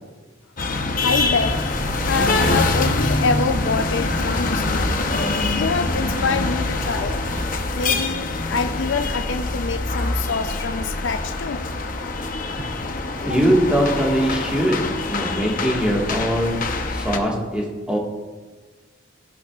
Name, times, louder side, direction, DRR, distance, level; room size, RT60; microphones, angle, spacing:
sound 1, 0.6-17.2, left 3 dB, 45° left, 0.8 m, -24 dB
voice 1, 1.0-1.6 2.1-5.0 5.5-7.2 7.7-11.7 13.3-13.4, left 4 dB, 65° left, 10 dB, 0.5 m, -25 dB
sound 2, 1.2-7.6, equal, 35° right, 2.7 m, -32 dB
voice 2, 13.2-14.8 15.1-18.0, equal, 5° right, -2 dB, 1.6 m, -21 dB
13.5 x 11.0 x 2.4 m, 1.4 s
head